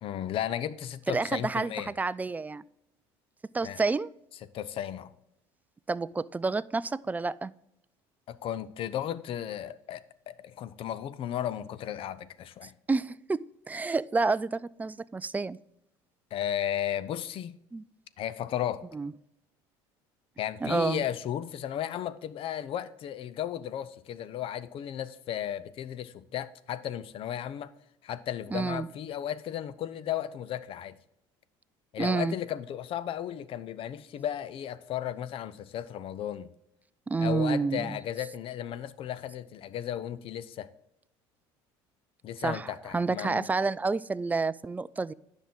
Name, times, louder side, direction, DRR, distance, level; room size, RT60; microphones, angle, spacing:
voice 1, 0.0-1.9 3.6-3.8 4.4-5.1 8.3-12.7 16.3-17.6 18.2-18.8 20.4-27.7 28.0-31.0 31.9-36.5 37.2-40.7 42.2-43.5, left 10 dB, 55° left, 0.6 m, -35 dB
voice 2, 1.1-1.7 2.0-2.6 3.5-4.1 5.9-7.5 12.9-15.6 17.7-17.8 18.9-19.1 20.6-21.0 28.5-28.9 32.0-32.3 37.1-38.0 42.4-45.1, right 4 dB, 15° right, 0.3 m, -29 dB
10.0 x 6.1 x 3.7 m
supercardioid pair, 85°, 12 cm